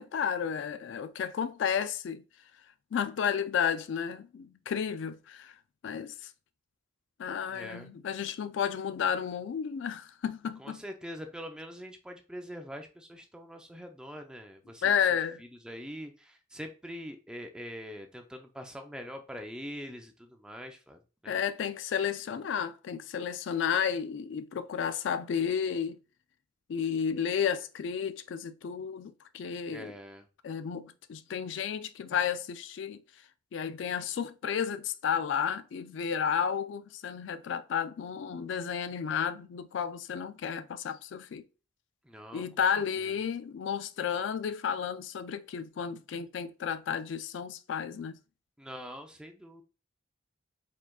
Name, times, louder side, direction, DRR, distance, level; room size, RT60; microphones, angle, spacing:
voice 1, 0.0-2.2 2.9-5.5 5.8-6.3 7.2-10.8 14.8-15.4 21.3-26.0 26.7-29.9 30.4-33.0 33.5-41.4 42.3-48.2, left 7 dB, 70° left, 0.3 m, -32 dB
voice 2, 7.5-7.9 10.6-14.8 15.4-21.3 29.7-30.3 42.0-42.5 43.0-43.1 48.6-49.6, equal, 5° right, 0.5 m, -44 dB
4.8 x 3.8 x 2.3 m
head